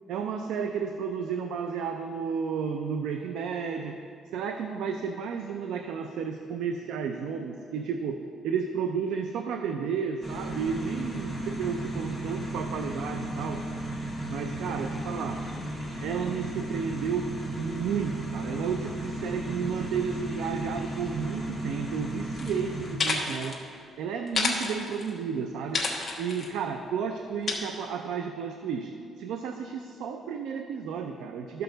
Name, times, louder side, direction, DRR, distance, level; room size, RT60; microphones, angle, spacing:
voice 1, 0.1-4.0 4.3-13.7 14.2-15.4 16.0-23.6 24.0-25.8 26.2-31.6, right 6 dB, 90° right, 6 dB, 0.5 m, -32 dB
sound 1, 10.2-23.0, right 1 dB, 10° right, 1.4 m, -35 dB
sound 2, 22.4-22.5 22.9-23.6 24.3-25.1 25.7-26.5 27.5-27.6, left 3 dB, 25° left, 1.1 m, -29 dB
12.5 x 6.8 x 3.9 m, 2.4 s
cardioid pair, 165°, 0 cm